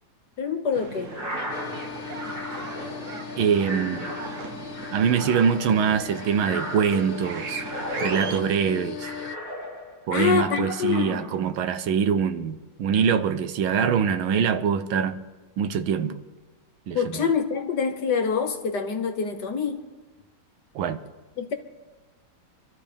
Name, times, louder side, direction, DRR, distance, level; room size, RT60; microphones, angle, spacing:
voice 1, 0.4-1.1 10.1-11.3 16.9-19.8 21.4-21.5, left 6 dB, 55° left, 1.6 m, -25 dB
sound 1, 0.7-8.4, right 4 dB, 50° right, 1.0 m, -38 dB
sound 2, 1.0-10.1 10.5-11.5, equal, 20° right, 2.6 m, -36 dB
sound 3, 1.5-9.4, left 10 dB, 85° left, 1.5 m, -39 dB
voice 2, 3.4-4.1 4.9-7.6 8.0-9.1 10.1-15.2 15.6-16.2 16.9-17.2 20.7-21.0, right 7 dB, 75° right, 1.5 m, -24 dB
25.5 x 13.0 x 3.5 m
omnidirectional pair, 2.3 m